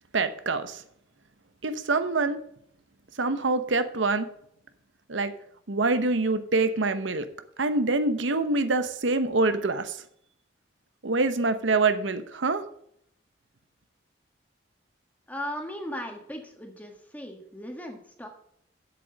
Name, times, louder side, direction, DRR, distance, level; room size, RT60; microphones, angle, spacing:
voice 1, 0.1-0.8 1.6-2.4 3.2-4.3 5.1-5.3 5.7-7.2 7.6-10.0 11.0-12.6, right 3 dB, 90° right, 10 dB, 1.0 m, -25 dB
voice 2, 15.3-18.3, equal, 10° left, 3 dB, 1.6 m, -37 dB
8.0 x 7.6 x 6.6 m, 0.69 s
head